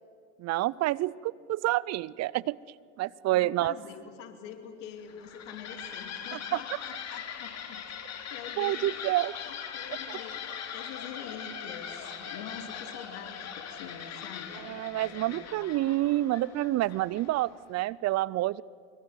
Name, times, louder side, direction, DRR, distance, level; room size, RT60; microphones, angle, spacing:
voice 1, 0.4-2.6 3.0-3.7 8.6-9.3 10.1-10.2 14.6-18.6, right 16 dB, 45° right, 23 dB, 0.6 m, -28 dB
voice 2, 3.3-7.9 8.3-15.5, left 8 dB, 75° left, 6 dB, 3.0 m, -45 dB
sound 1, 5.0-17.5, left 7 dB, 45° left, 3.4 m, -41 dB
24.5 x 23.5 x 8.1 m, 2.3 s
hypercardioid pair, 85°, 36 cm